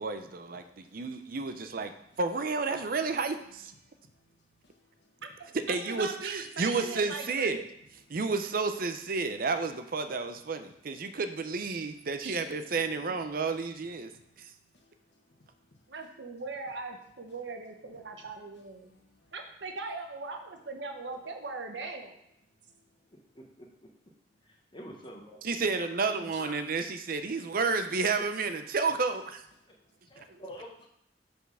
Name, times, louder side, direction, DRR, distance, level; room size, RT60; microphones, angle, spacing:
voice 1, 0.0-3.7 5.7-7.6 8.1-14.1 14.4-14.5 25.4-29.4 30.2-30.3, right 4 dB, 55° right, 0.6 m, -31 dB
voice 2, 0.6-1.0 3.8-5.2 8.1-8.2 13.6-15.9 18.0-18.2 18.4-19.3 22.6-23.2 29.9-30.2, left 1 dB, 65° left, 1.5 m, -66 dB
voice 3, 5.2-7.6 12.2-12.4 15.9-18.9 19.3-22.2 30.3-30.4, right 3 dB, 80° right, 1.0 m, -40 dB
voice 4, 23.1-23.7 24.4-25.4 25.8-26.6 29.7-29.8 30.1-30.9, equal, 30° left, 0.9 m, -47 dB
5.6 x 4.4 x 6.2 m
head